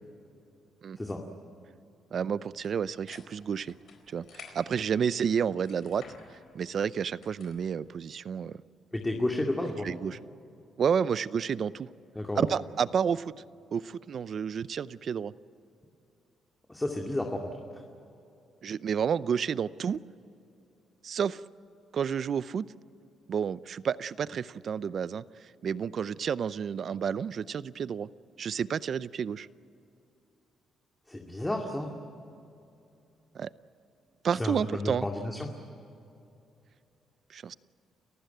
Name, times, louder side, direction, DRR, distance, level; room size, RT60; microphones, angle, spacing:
voice 1, 2.1-3.7 4.1-6.0 6.5-8.6 9.8-10.2 10.8-11.9 12.3-13.3 13.7-15.3 18.6-20.0 21.0-21.4 21.9-22.7 23.3-25.2 25.6-28.1 28.4-29.5 33.3-33.5 34.2-35.1 37.3-37.5, right 7 dB, 55° right, 17 dB, 0.6 m, -30 dB
sound 1, 2.5-7.7, left 5 dB, 70° left, 4.3 m, -53 dB
voice 2, 8.9-9.9 12.2-12.4 16.7-17.6 31.1-31.9 34.3-35.5, left 1 dB, 10° left, 1 dB, 2.3 m, -31 dB
29.5 x 15.0 x 9.2 m, 2.7 s
cardioid pair, 90°, 0 cm